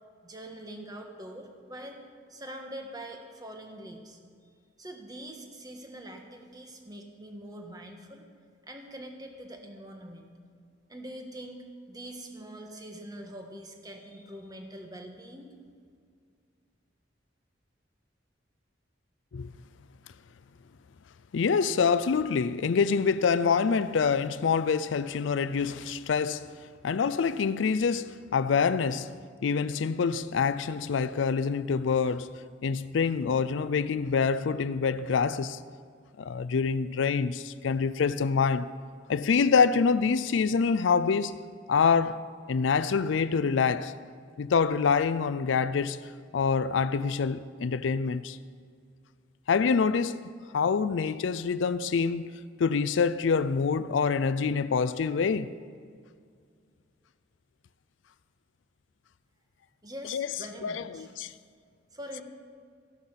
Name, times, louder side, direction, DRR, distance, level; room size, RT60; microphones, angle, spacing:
voice 1, 0.2-2.0 2.3-4.5 4.8-8.3 8.7-10.3 10.9-15.5 59.8-61.1 61.9-62.2, right 1 dB, 20° right, 1.4 m, -44 dB
voice 2, 21.3-26.6 26.8-29.1 29.4-35.6 36.2-38.7 39.1-41.4 41.7-43.9 44.4-46.0 46.3-48.4 49.5-50.2 50.5-52.3 52.6-55.6 60.1-60.3 60.6-61.3, left 5 dB, 80° left, 0.4 m, -26 dB
14.0 x 11.5 x 5.8 m
head